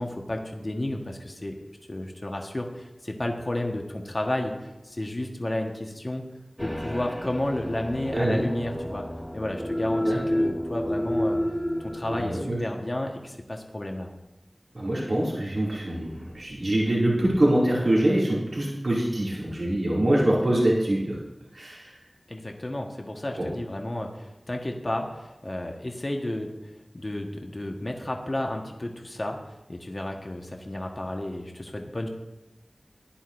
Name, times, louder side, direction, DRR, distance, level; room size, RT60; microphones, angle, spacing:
voice 1, 0.0-1.6 1.9-6.3 6.6-9.1 9.3-11.4 11.8-14.1 22.3-26.5 26.9-29.4 29.7-32.1, left 1 dB, 45° left, 2 dB, 1.3 m, -32 dB
sound 1, 6.6-12.1, equal, 15° left, 1.6 m, -30 dB
voice 2, 8.1-8.4 10.0-10.2 12.1-12.6 14.7-21.2 21.5-21.9 23.4-23.5, right 1 dB, 75° right, -6 dB, 2.5 m, -24 dB
15.5 x 10.5 x 2.6 m, 1.0 s
wide cardioid pair, 45°, 0 cm